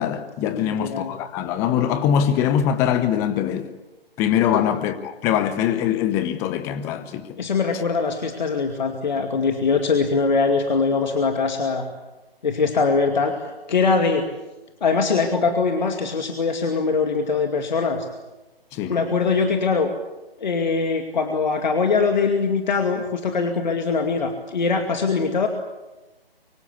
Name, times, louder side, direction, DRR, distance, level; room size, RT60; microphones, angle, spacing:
voice 1, 0.0-3.7 4.2-7.4 18.7-18.9, left 9 dB, 10° left, 0.8 m, -22 dB
voice 2, 0.5-1.1 4.5-4.6 7.4-11.9 12.4-13.3 13.7-14.2 14.8-18.1 18.9-19.9 20.4-25.5, left 4 dB, 50° left, 2.4 m, -22 dB
25.5 x 24.5 x 8.4 m
figure-of-eight pair, 145°, 30 cm